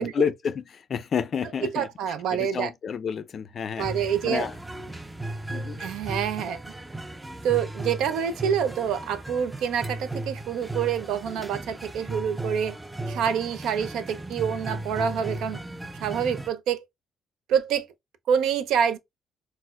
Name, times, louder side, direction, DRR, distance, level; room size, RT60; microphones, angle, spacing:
voice 1, 0.0-1.9 2.3-4.5 5.5-5.8, left 7 dB, 50° left, 0.4 m, -30 dB
voice 2, 1.6-2.7 3.8-4.5 5.8-6.6 7.4-12.8 13.1-15.6 16.0-16.8 17.5-17.9 18.3-19.0, right 8 dB, 85° right, 0.4 m, -27 dB
sound 1, 3.8-16.5, right 1 dB, 10° right, 0.4 m, -36 dB
4.2 x 2.0 x 2.2 m
cardioid pair, 90°, 0 cm